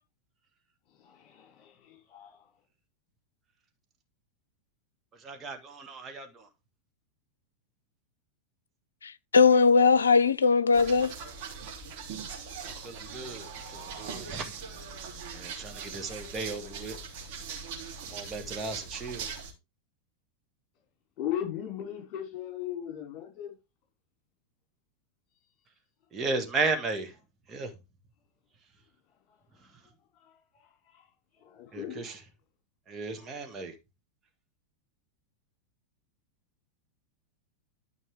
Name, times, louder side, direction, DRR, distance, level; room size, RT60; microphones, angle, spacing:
voice 1, 0.9-2.5 21.2-23.5 30.1-31.1 31.3-32.2 33.1-33.4, left 10 dB, 35° left, 5.0 m, -39 dB
voice 2, 5.2-6.4 12.6-14.4 15.3-17.0 18.1-19.3 26.1-27.1 27.5-27.7 31.7-32.2 32.9-33.7, right 3 dB, 20° right, 2.0 m, -35 dB
voice 3, 9.0-11.1, left 5 dB, 70° left, 0.6 m, -20 dB
sound 1, 10.7-19.5, right 5 dB, 45° right, 3.3 m, -41 dB
13.0 x 5.4 x 3.6 m
figure-of-eight pair, 90°, 0 cm